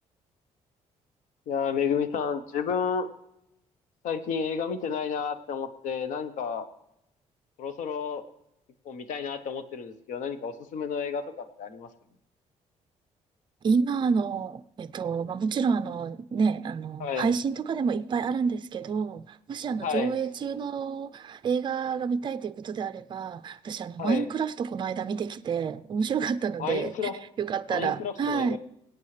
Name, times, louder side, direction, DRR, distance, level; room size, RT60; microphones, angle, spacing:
voice 1, 1.5-3.1 4.0-6.7 7.6-8.2 8.8-11.9 17.0-17.3 19.8-20.1 24.0-24.2 26.6-27.2 27.7-28.6, left 6 dB, 80° left, 1.1 m, -31 dB
voice 2, 13.6-26.9 27.4-28.6, right 6 dB, 35° right, 0.5 m, -29 dB
24.5 x 8.5 x 3.3 m
cardioid pair, 135°, 13 cm